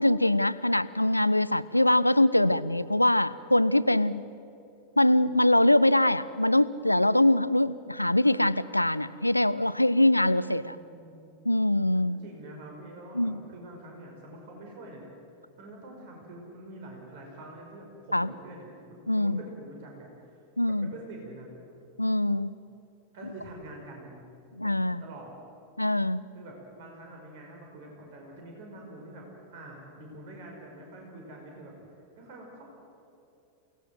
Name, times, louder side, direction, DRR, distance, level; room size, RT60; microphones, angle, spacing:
voice 1, 0.0-4.2 5.0-10.8 11.4-12.2 13.1-13.4 18.1-18.3 19.1-19.4 20.6-20.9 22.0-22.5 24.6-25.0 25.8-26.2, left 1 dB, 85° left, 17 dB, 0.6 m, -23 dB
voice 2, 10.2-11.4 11.9-15.1 15.6-21.5 23.1-24.2 24.6-24.7 25.0-25.3 26.3-29.3 29.5-32.7, right 1 dB, 50° right, 0 dB, 5.6 m, -46 dB
28.0 x 19.0 x 7.8 m, 2.7 s
figure-of-eight pair, 90°, 0 cm